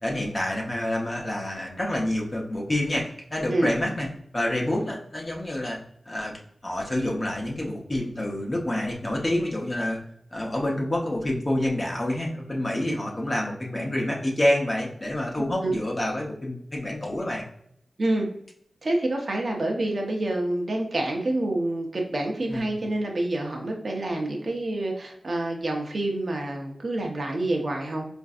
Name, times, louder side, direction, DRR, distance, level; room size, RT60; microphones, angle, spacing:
voice 1, 0.0-5.8 6.1-6.3 6.6-10.0 10.3-17.4 22.5-22.7, left 1 dB, 30° left, -1 dB, 0.8 m, -28 dB
voice 2, 18.8-28.1, right 1 dB, 50° right, 1 dB, 0.7 m, -27 dB
4.4 x 2.6 x 2.4 m, 0.70 s
wide cardioid pair, 80°, 0 cm